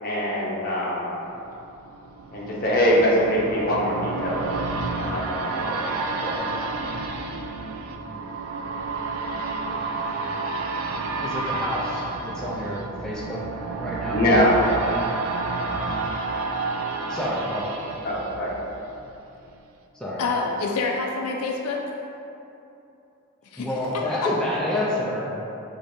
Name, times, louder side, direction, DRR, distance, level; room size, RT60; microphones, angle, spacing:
voice 1, 0.0-1.1 2.3-4.4 4.9-6.4 14.1-14.7 18.0-18.5, equal, 40° left, -6 dB, 0.8 m, -23 dB
sound 1, 1.3-19.1 19.5-19.6, right 3 dB, 65° right, 0.3 m, -30 dB
voice 2, 11.2-13.4 13.8-14.2 17.1-17.9 19.9-20.2 23.6-25.3, left 1 dB, 5° left, -7 dB, 0.4 m, -28 dB
voice 3, 20.2-21.8 23.4-23.7, left 4 dB, 80° left, 1 dB, 0.4 m, -27 dB
5.1 x 3.2 x 2.6 m, 2.9 s
head